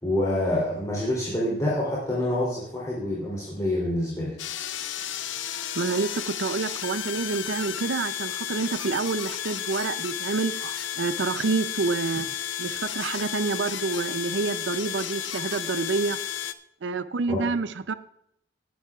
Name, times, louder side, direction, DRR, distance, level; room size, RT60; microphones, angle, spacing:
voice 1, 0.0-4.3 17.3-17.5, left 1 dB, 20° left, -5 dB, 3.1 m, -27 dB
sound 1, 4.4-16.5, left 10 dB, 85° left, 0.7 m, -33 dB
voice 2, 5.8-12.3 12.6-16.2 16.8-17.9, right 4 dB, 70° right, 13 dB, 0.5 m, -28 dB
19.0 x 10.0 x 2.4 m, 0.76 s
head